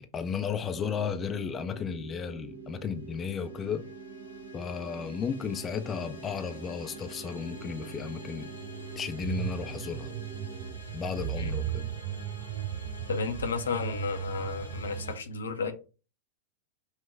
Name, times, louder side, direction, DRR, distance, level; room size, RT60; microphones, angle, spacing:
voice 1, 0.0-3.8 4.5-8.5 9.0-10.1 10.9-11.9, left 6 dB, 25° left, 0.4 m, -34 dB
sound 1, 0.7-10.7, right 5 dB, 70° right, 1.2 m, -46 dB
sound 2, 2.9-15.2, right 1 dB, 85° right, 1.2 m, -46 dB
sound 3, 9.2-15.1, right 12 dB, 50° right, 0.5 m, -37 dB
voice 2, 13.1-15.7, left 5 dB, 70° left, 0.6 m, -32 dB
5.6 x 2.2 x 3.3 m
figure-of-eight pair, 90°, 0 cm